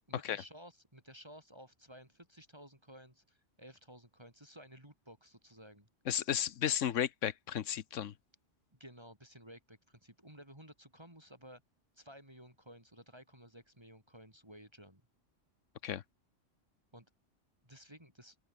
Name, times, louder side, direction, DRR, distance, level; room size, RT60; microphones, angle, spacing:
voice 1, 0.1-5.9 8.7-11.6 11.9-15.0 16.9-17.1 17.6-18.4, equal, 20° right, 3.9 m, -55 dB
voice 2, 6.1-8.1 15.8-16.0, left 10 dB, 75° left, 1.2 m, -34 dB
open air
omnidirectional pair, 1.3 m